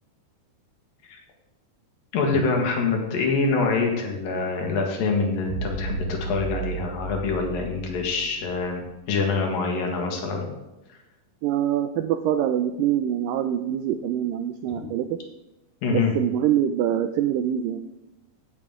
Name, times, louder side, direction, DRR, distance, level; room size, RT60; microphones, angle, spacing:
voice 1, 2.1-8.8 9.1-10.5 14.7-14.8 15.8-16.1, left 4 dB, 70° left, 1 dB, 3.3 m, -25 dB
sound 1, 5.5-8.9, right 4 dB, 60° right, 3.3 m, -34 dB
voice 2, 11.4-15.2 15.9-17.8, right 10 dB, 85° right, 9 dB, 1.9 m, -24 dB
15.0 x 7.3 x 3.7 m, 1.0 s
omnidirectional pair, 4.4 m